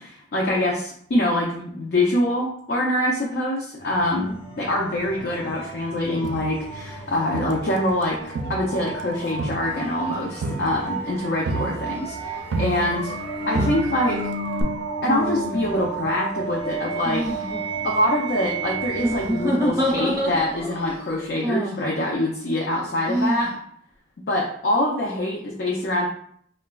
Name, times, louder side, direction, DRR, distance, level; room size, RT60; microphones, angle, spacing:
voice 1, 0.0-13.1 13.5-14.2 15.0-17.3 17.8-23.5 24.3-26.1, left 1 dB, 65° left, -2 dB, 0.5 m, -24 dB
sound 1, 3.8-21.3, right 4 dB, 30° left, 0.8 m, -33 dB
Crowd, 6.2-8.0 8.4-13.3 13.5-14.2 14.6-14.7, right 3 dB, 85° right, 0.4 m, -31 dB
sound 2, 13.5-13.7 15.0-15.9 17.0-17.6 19.0-20.7 21.4-21.9 23.1-23.5, equal, 20° right, 0.5 m, -26 dB
3.9 x 2.2 x 2.2 m, 0.62 s
head